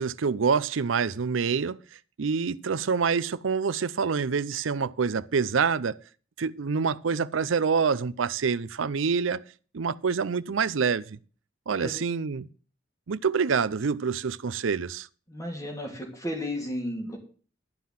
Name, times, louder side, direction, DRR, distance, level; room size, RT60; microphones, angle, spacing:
voice 1, 0.0-1.8 2.2-6.0 6.4-9.4 9.7-11.2 11.7-12.5 13.1-15.1, right 5 dB, 90° right, 0.5 m, -26 dB
voice 2, 15.3-17.2, left 1 dB, 15° left, 2.8 m, -33 dB
12.0 x 5.7 x 7.5 m
head